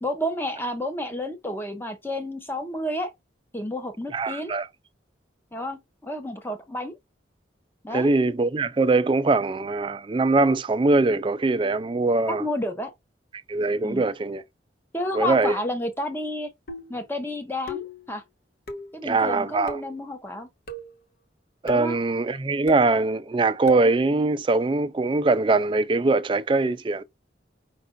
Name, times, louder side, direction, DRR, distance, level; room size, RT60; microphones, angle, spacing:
voice 1, 0.0-3.1 3.5-4.6 5.5-6.9 7.8-8.1 12.4-12.9 13.8-14.0 14.9-16.5 16.9-18.2 18.9-20.5 21.7-22.0, left 1 dB, 10° left, 0.8 m, -30 dB
voice 2, 4.1-4.7 7.9-12.4 13.5-14.4 15.1-15.6 19.0-19.8 21.6-27.0, right 3 dB, 25° right, 0.3 m, -22 dB
sound 1, 16.7-17.1 17.7-18.1 18.7-19.0 19.7-20.0 20.7-21.0 21.7-22.0 22.7-22.9 23.7-23.9, left 3 dB, 55° left, 1.0 m, -36 dB
5.3 x 2.5 x 3.8 m
head